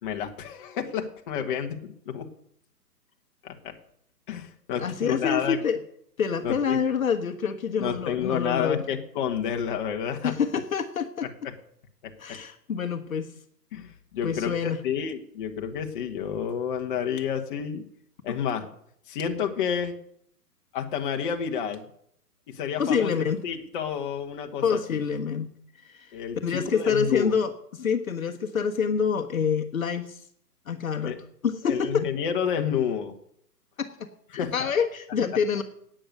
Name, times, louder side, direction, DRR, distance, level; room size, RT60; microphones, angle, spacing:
voice 1, 0.0-2.3 3.4-3.7 4.3-5.6 6.4-6.8 7.8-10.3 11.4-11.5 12.0-12.4 13.7-17.8 18.2-18.7 19.1-19.9 20.7-21.8 22.5-23.1 23.4-24.8 26.1-27.3 31.0-31.2 31.7-33.1 34.3-34.7, left 8 dB, 30° left, 4 dB, 1.5 m, -30 dB
voice 2, 4.8-5.8 6.2-8.8 10.2-11.3 12.2-13.3 14.2-14.8 22.8-23.4 24.6-25.5 25.8-26.1 26.4-30.2 30.7-31.2 31.4-32.1 33.8-35.6, left 6 dB, 55° left, 6 dB, 1.4 m, -27 dB
12.0 x 9.0 x 9.3 m, 0.69 s
figure-of-eight pair, 130°, 48 cm